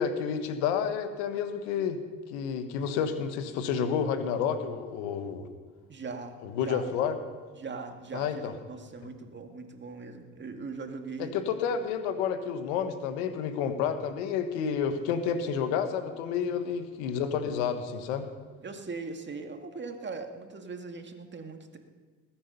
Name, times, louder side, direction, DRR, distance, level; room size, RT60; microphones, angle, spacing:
voice 1, 0.0-2.0 2.3-5.5 6.4-7.2 8.1-8.5 11.2-18.3, left 7 dB, 85° left, 9 dB, 1.3 m, -30 dB
voice 2, 5.9-6.8 7.5-11.4 16.4-16.7 18.6-21.8, right 4 dB, 35° right, 5 dB, 2.0 m, -40 dB
20.0 x 8.8 x 5.5 m, 1.5 s
supercardioid pair, 70°, 34 cm